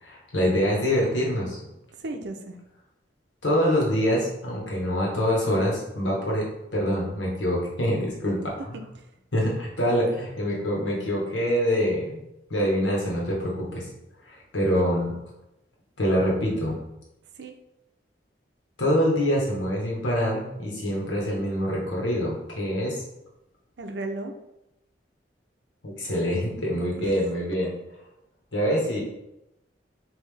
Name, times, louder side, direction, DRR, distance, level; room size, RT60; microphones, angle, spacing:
voice 1, 0.0-1.6 3.4-6.5 6.7-8.8 9.3-12.2 12.5-13.9 14.3-15.1 16.0-16.7 18.8-23.0 25.8-27.7 28.5-29.0, equal, 80° left, -3 dB, 1.4 m, -25 dB
voice 2, 2.0-2.5 8.7-8.8 14.6-14.7 17.4-17.5 23.8-24.3 27.0-27.1, right 2 dB, 65° right, 5 dB, 0.6 m, -35 dB
5.6 x 2.9 x 3.3 m, 0.89 s
head